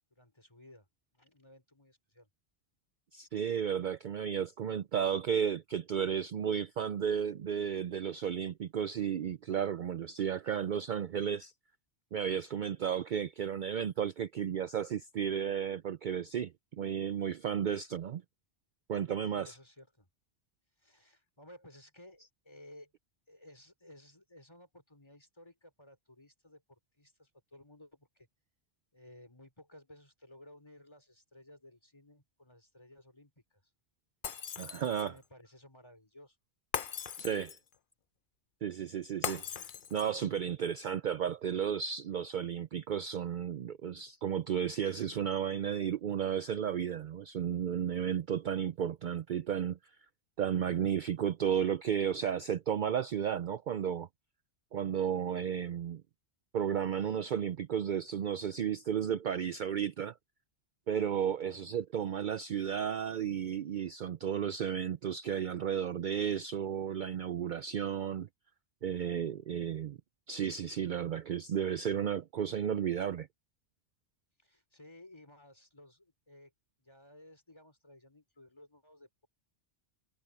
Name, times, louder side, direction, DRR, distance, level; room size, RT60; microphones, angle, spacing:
voice 1, 0.1-2.3 19.3-20.1 20.8-22.9 23.3-28.3 28.9-33.6 34.7-36.4 61.3-61.7 74.4-76.5 76.8-79.3, left 1 dB, 25° left, 4.4 m, -57 dB
voice 2, 3.1-11.5 12.1-16.5 16.8-18.2 18.9-19.5 34.6-35.1 37.2-37.6 38.6-39.4 39.9-49.8 50.4-54.1 54.7-56.0 56.5-60.1 60.9-68.3 68.8-70.0 70.3-73.3, right 8 dB, 55° right, 0.6 m, -33 dB
Shatter, 34.2-35.2 36.7-37.7 39.2-40.2, left 7 dB, 55° left, 0.9 m, -39 dB
omnidirectional pair, 1.1 m